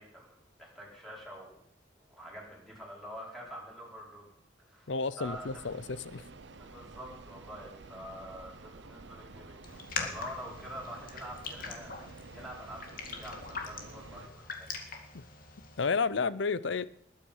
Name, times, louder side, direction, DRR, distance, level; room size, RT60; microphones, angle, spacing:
voice 1, 0.0-1.6 2.0-4.3 4.6-5.6 6.5-14.7, equal, ahead, -4 dB, 5.1 m, -46 dB
voice 2, 4.9-6.2 15.1-15.2 15.8-16.8, left 4 dB, 80° left, 17 dB, 0.6 m, -31 dB
sound 1, 5.2-14.3, right 3 dB, 75° right, 0.8 m, -50 dB
Raindrop, 9.6-15.9, left 5 dB, 50° left, 2.2 m, -42 dB
20.5 x 9.1 x 5.6 m, 0.73 s
head